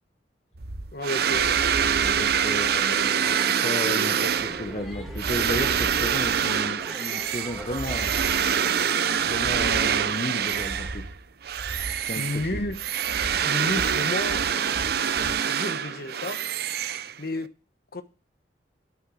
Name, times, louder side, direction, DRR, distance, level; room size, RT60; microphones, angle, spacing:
sound 1, 0.5-15.5, right 1 dB, 80° right, 1.0 m, -39 dB
voice 1, 0.9-1.6 2.5-2.7 12.2-12.8 13.4-14.4 15.1-16.4 17.2-17.5 17.9-18.0, left 1 dB, 60° left, 1.2 m, -31 dB
sound 2, 1.0-11.1 11.4-17.5, right 8 dB, 60° right, 0.6 m, -25 dB
voice 2, 2.0-8.1 9.2-11.1 11.9-12.7, left 1 dB, 35° left, 0.9 m, -34 dB
sound 3, 3.2-9.2, right 1 dB, ahead, 2.1 m, -42 dB
11.5 x 6.3 x 6.2 m
head